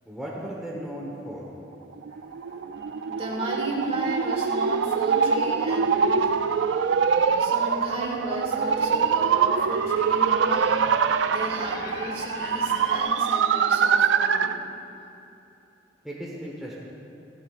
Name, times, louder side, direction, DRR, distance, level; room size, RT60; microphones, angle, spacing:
voice 1, 0.1-1.5 16.0-16.8, right 1 dB, ahead, -5 dB, 1.1 m, -36 dB
sound 1, 1.9-14.6, right 6 dB, 85° right, 0.4 m, -24 dB
sound 2, 2.1-13.0, left 2 dB, 50° left, 0.9 m, -44 dB
voice 2, 3.1-6.3 6.5-10.8 11.2-14.6, right 1 dB, 35° right, -3 dB, 2.4 m, -35 dB
15.5 x 14.0 x 2.5 m, 2.8 s
head